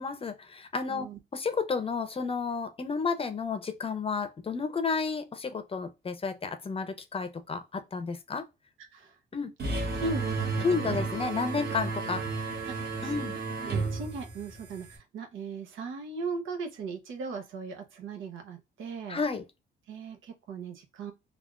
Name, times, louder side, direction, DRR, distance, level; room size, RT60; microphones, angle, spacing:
voice 1, 0.0-8.4 9.3-9.5 10.6-12.5 13.0-13.3 19.1-19.4, left 4 dB, 30° left, 0.6 m, -32 dB
voice 2, 0.9-1.2 8.9-9.2 9.9-10.4 10.7-10.9 12.7-12.8 13.0-13.2 13.6-19.2 19.9-21.1, right 4 dB, 80° right, 0.9 m, -38 dB
sound 1, 9.6-15.0, right 3 dB, 55° right, 1.2 m, -33 dB
3.4 x 2.4 x 2.3 m
cardioid pair, 90°, 20 cm